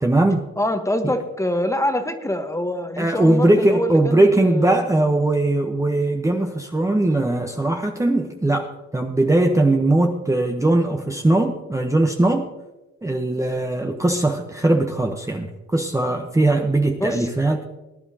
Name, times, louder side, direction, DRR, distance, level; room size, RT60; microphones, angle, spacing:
voice 1, 0.0-0.4 1.0-1.1 3.0-12.5 13.0-17.6, right 2 dB, 10° right, 3 dB, 0.9 m, -20 dB
voice 2, 0.6-4.9 17.0-17.3, left 1 dB, 10° left, 7 dB, 1.1 m, -25 dB
19.5 x 9.9 x 2.8 m, 1.1 s
cardioid pair, 90°, 30 cm